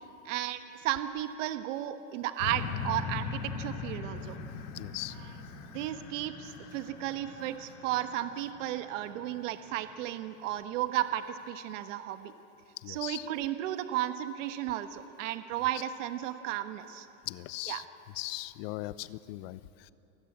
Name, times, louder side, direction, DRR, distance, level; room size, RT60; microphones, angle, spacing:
voice 1, 0.2-4.4 5.7-12.3 12.9-17.1 17.7-17.8, right 13 dB, 65° right, 9 dB, 1.4 m, -34 dB
sound 1, 2.4-9.8 10.3-10.4, left 5 dB, 80° left, 4.2 m, -40 dB
voice 2, 4.7-5.2 12.8-13.3 17.3-17.9 18.1-19.9, left 18 dB, 50° left, 16 dB, 0.8 m, -39 dB
29.5 x 19.5 x 8.7 m, 2.9 s
supercardioid pair, 155°, 40 cm